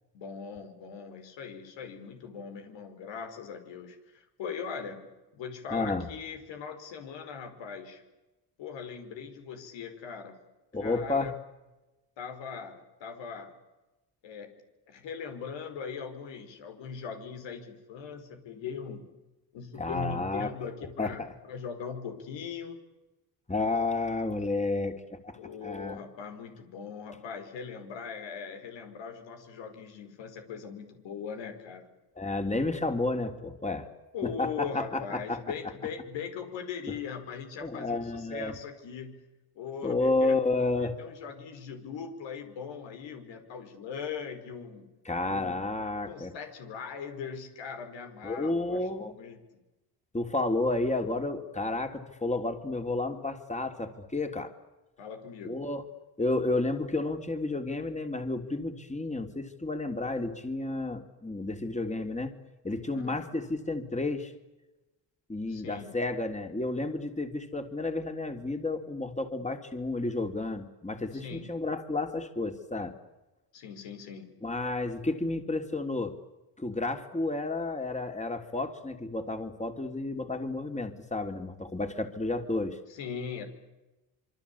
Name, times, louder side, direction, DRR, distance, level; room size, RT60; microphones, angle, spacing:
voice 1, 0.1-5.1 5.3-8.0 8.6-10.4 10.8-11.4 12.2-13.5 14.2-14.5 14.9-19.1 19.5-22.8 25.4-31.9 34.1-40.4 41.0-44.9 45.3-45.6 46.1-49.6 55.0-55.6 62.9-63.3 65.5-66.0 71.2-71.6 73.5-74.4 82.9-83.4, left 6 dB, 85° left, 5 dB, 5.2 m, -40 dB
voice 2, 5.7-6.1 10.7-11.3 19.8-20.5 21.0-21.3 23.5-26.0 32.1-33.9 34.2-35.4 36.9-37.0 37.6-38.5 39.8-41.0 45.0-46.3 48.2-49.1 50.1-54.5 55.4-55.8 56.2-62.3 62.6-64.3 65.3-72.9 74.4-76.2 76.6-82.8, left 2 dB, 15° left, 6 dB, 3.3 m, -31 dB
26.5 x 24.0 x 8.5 m, 1.1 s
supercardioid pair, 70°, 43 cm